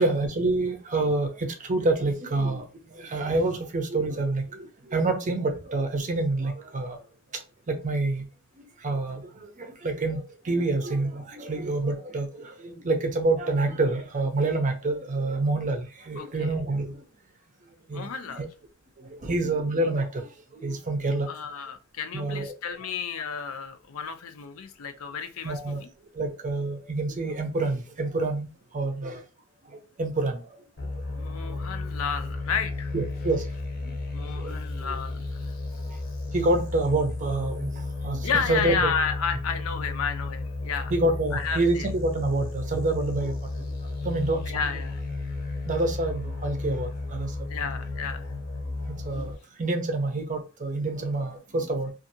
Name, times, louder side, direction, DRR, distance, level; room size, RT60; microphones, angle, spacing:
voice 1, 0.0-2.6 2.9-4.4 4.9-7.0 7.7-8.2 8.8-9.2 9.6-17.0 17.9-18.5 19.2-20.3 20.6-21.3 22.1-22.8 25.4-25.8 26.2-28.5 28.7-29.2 30.0-30.4 32.9-33.4 34.4-34.5 36.3-37.7 38.0-38.9 40.9-43.3 44.0-44.5 45.7-47.3 48.9-49.3 49.6-51.9, right 2 dB, 35° right, 0.6 m, -27 dB
voice 2, 16.2-16.5 17.9-18.5 21.3-25.9 31.2-32.9 34.1-35.5 38.2-40.9 41.3-41.9 44.5-45.0 47.5-48.3, left 6 dB, 75° left, 0.5 m, -32 dB
sound 1, 30.8-49.3, left 3 dB, 45° left, 0.8 m, -33 dB
2.6 x 2.4 x 2.6 m
head